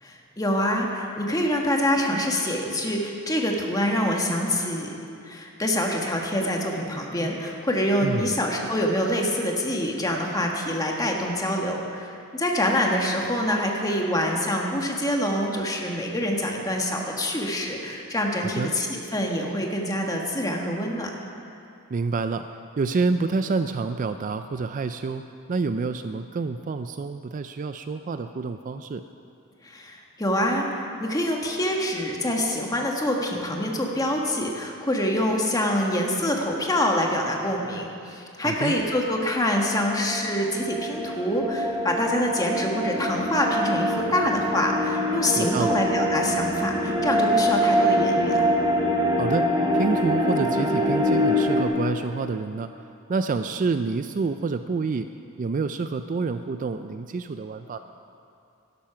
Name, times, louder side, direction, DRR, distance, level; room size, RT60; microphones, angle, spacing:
voice 1, 0.0-5.0 5.2-21.1 29.6-48.5, left 1 dB, 15° left, 0 dB, 1.4 m, -26 dB
voice 2, 8.0-8.4 18.4-18.7 21.9-22.5 22.8-25.2 25.5-29.0 38.4-38.8 45.3-45.8 49.2-52.7 53.1-55.1 55.4-57.8, right 4 dB, 35° right, 9 dB, 0.3 m, -28 dB
sound 1, 39.3-51.6, equal, 20° right, 1.6 m, -24 dB
12.0 x 12.0 x 5.8 m, 2.6 s
head